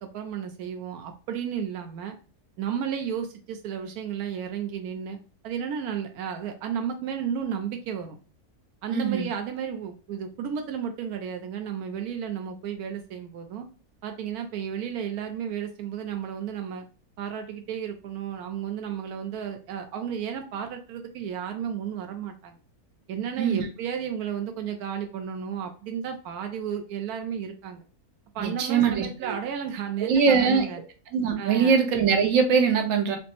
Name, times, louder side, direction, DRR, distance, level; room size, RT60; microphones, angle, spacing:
voice 1, 0.0-2.2 2.6-5.2 5.4-8.2 8.8-13.7 14.0-16.9 17.2-22.6 23.1-27.8 28.3-30.8 31.4-31.8, right 8 dB, 85° right, 6 dB, 1.1 m, -33 dB
voice 2, 8.9-9.3 23.4-23.7 28.4-29.4 30.0-30.6 31.1-33.2, right 6 dB, 65° right, 4 dB, 1.2 m, -22 dB
5.1 x 2.0 x 2.9 m, 0.37 s
omnidirectional pair, 1.6 m